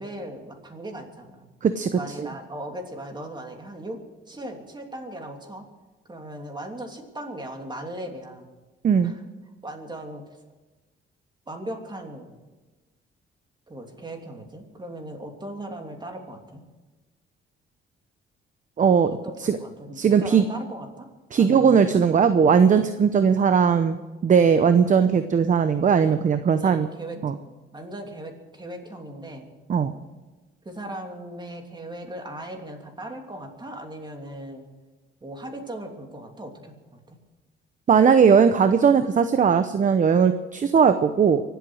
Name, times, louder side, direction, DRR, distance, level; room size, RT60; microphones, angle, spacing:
voice 1, 0.0-1.5 1.9-4.0 4.3-5.6 6.1-8.5 9.0-9.2 9.6-10.4 11.5-12.3 13.7-16.6 19.2-21.1 21.4-22.0 26.5-27.4 27.7-29.5 30.6-34.6 35.2-37.2, right 1 dB, 20° right, 3 dB, 3.0 m, -38 dB
voice 2, 18.8-19.1 19.4-19.6 20.0-20.4 21.3-23.9 24.2-26.9 27.2-27.3 29.7-29.9 37.9-41.4, right 6 dB, 40° right, 10 dB, 0.8 m, -18 dB
24.5 x 8.1 x 6.4 m, 1.2 s
cardioid pair, 90°, 20 cm